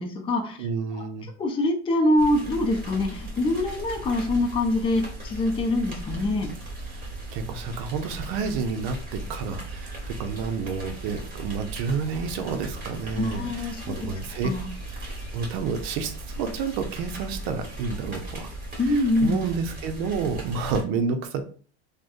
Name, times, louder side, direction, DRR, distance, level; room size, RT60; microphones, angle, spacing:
voice 1, 0.0-0.6 0.9-1.0 1.4-6.5 13.2-14.1 14.4-14.7 18.8-19.4, left 2 dB, 15° left, 2 dB, 0.5 m, -24 dB
voice 2, 0.6-1.3 6.9-14.5 14.9-18.5 18.8-21.4, right 5 dB, 65° right, 7 dB, 0.6 m, -30 dB
sound 1, 2.2-20.8, right 1 dB, 25° right, 1.3 m, -37 dB
3.4 x 2.2 x 2.5 m, 0.43 s
supercardioid pair, 115°, 34 cm